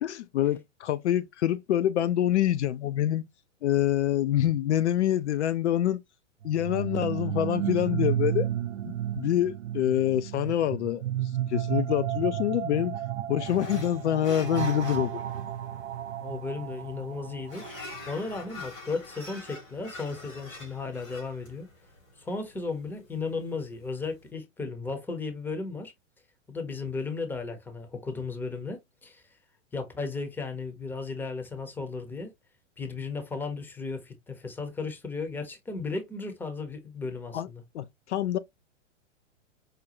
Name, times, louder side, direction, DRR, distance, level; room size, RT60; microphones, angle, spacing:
voice 1, 0.0-3.2 3.6-6.0 6.4-8.5 8.9-11.0 11.5-13.0 13.3-15.2 37.3-37.5 37.7-38.4, left 11 dB, 65° left, 0.5 m, -26 dB
sound 1, 6.4-18.3, right 11 dB, 70° right, 0.5 m, -32 dB
sound 2, 13.4-24.3, left 2 dB, 85° left, 2.6 m, -46 dB
voice 2, 16.2-17.6 18.1-21.7 22.2-25.9 26.5-29.2 29.7-32.3 32.8-37.6, left 4 dB, 5° left, 0.6 m, -35 dB
5.0 x 2.2 x 2.8 m
hypercardioid pair, 110°, 38 cm